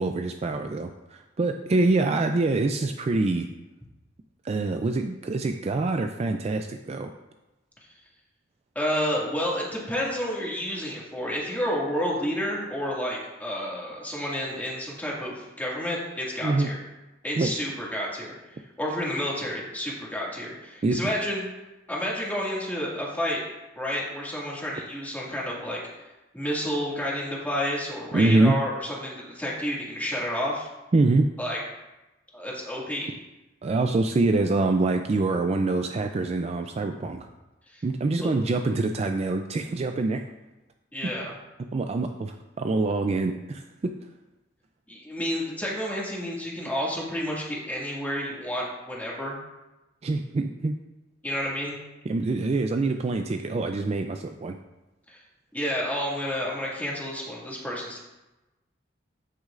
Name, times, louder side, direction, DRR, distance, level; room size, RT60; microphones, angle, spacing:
voice 1, 0.0-3.5 4.4-7.1 16.4-16.7 17.3-17.5 20.8-21.1 28.1-28.6 30.9-31.3 33.6-37.3 37.8-40.2 41.7-43.9 50.0-50.8 52.1-54.6, right 2 dB, 35° right, 6 dB, 0.3 m, -25 dB
voice 2, 8.8-16.8 17.2-21.4 21.9-23.4 23.8-26.1 26.3-30.7 31.4-31.6 32.3-33.1 37.7-37.8 38.2-38.3 40.9-41.4 44.9-49.3 51.2-51.8 55.1-55.2 55.5-58.0, equal, 10° left, -5 dB, 2.0 m, -30 dB
13.5 x 6.2 x 2.5 m, 1.0 s
head